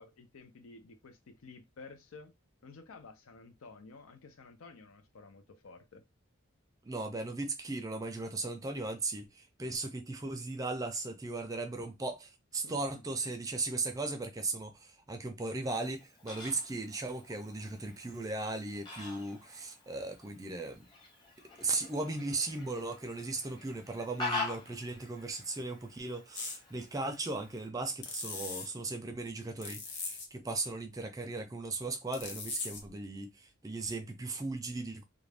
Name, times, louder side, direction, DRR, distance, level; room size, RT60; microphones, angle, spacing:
voice 1, 0.0-2.3 2.6-6.0 12.6-13.0, left 4 dB, 90° left, 0.6 m, -52 dB
voice 2, 6.8-20.9 21.6-35.0, right 3 dB, 15° right, 0.4 m, -37 dB
Fowl, 15.7-27.7, left 3 dB, 25° left, 0.8 m, -45 dB
sound 1, 26.3-26.6 28.0-28.7 29.6-30.3 32.1-32.9, left 4 dB, 55° left, 0.7 m, -40 dB
2.5 x 2.1 x 3.3 m
head